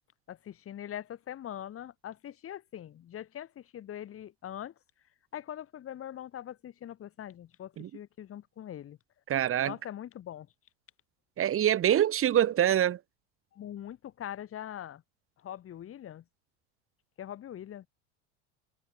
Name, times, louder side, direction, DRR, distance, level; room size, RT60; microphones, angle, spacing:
voice 1, 0.3-4.7 5.3-9.0 9.6-10.5 13.5-15.0 15.4-16.2 17.2-17.9, left 11 dB, 40° left, 5.8 m, -42 dB
voice 2, 9.3-9.7 11.4-13.0, right 11 dB, 40° right, 3.5 m, -25 dB
supercardioid pair, 100°, 35 cm